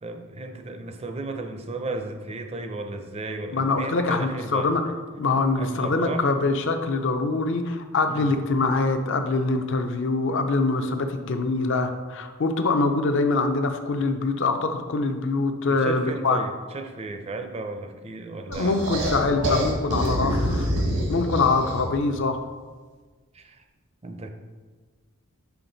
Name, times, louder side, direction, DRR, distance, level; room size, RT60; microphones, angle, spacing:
voice 1, 0.0-4.7 5.6-6.3 8.1-8.3 15.7-18.8 23.3-23.6 24.0-24.3, right 3 dB, 25° right, 6 dB, 0.5 m, -34 dB
voice 2, 3.5-4.8 5.2-16.4 18.5-20.7 21.1-22.4, left 3 dB, 55° left, 7 dB, 0.5 m, -24 dB
sound 1, 18.5-22.1, equal, 85° right, 1.3 m, -26 dB
5.8 x 5.0 x 3.9 m, 1.4 s
head